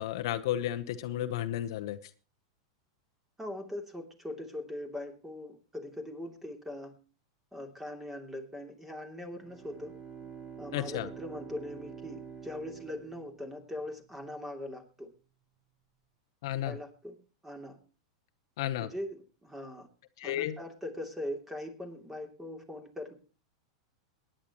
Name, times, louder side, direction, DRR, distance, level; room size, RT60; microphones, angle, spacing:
voice 1, 0.0-2.0 10.7-11.1 16.4-16.8 18.6-18.9 20.2-20.6, left 12 dB, 70° left, 9 dB, 0.9 m, -32 dB
voice 2, 3.4-6.9 7.5-9.9 10.6-15.1 16.6-17.1 17.4-17.8 18.8-19.9 20.2-23.1, left 1 dB, 10° right, 5 dB, 2.8 m, -41 dB
Bowed string instrument, 9.3-13.9, right 7 dB, 25° right, 5.5 m, -47 dB
22.0 x 10.0 x 3.0 m, 0.35 s
hypercardioid pair, 110°, 3 cm